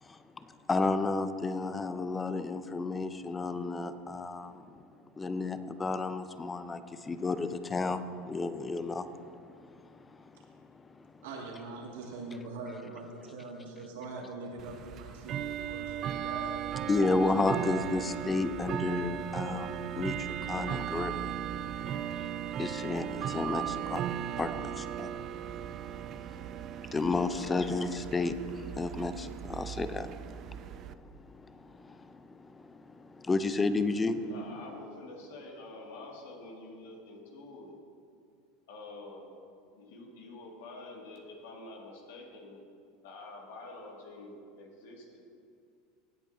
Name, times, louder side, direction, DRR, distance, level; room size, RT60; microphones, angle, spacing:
voice 1, 0.0-4.6 5.2-11.3 16.9-21.4 22.1-22.3 22.6-34.3, left 3 dB, 20° left, 11 dB, 0.6 m, -33 dB
voice 2, 11.2-16.9, right 3 dB, 85° right, -1 dB, 2.0 m, -43 dB
Bell / Tick-tock, 14.6-30.9, right 9 dB, 45° right, 0.3 m, -37 dB
voice 3, 27.4-27.7 34.2-37.8 38.7-39.3 39.8-42.6 43.0-45.3, left 2 dB, 80° left, -1 dB, 2.1 m, -47 dB
17.5 x 8.1 x 2.7 m, 2.3 s
supercardioid pair, 105°, 0 cm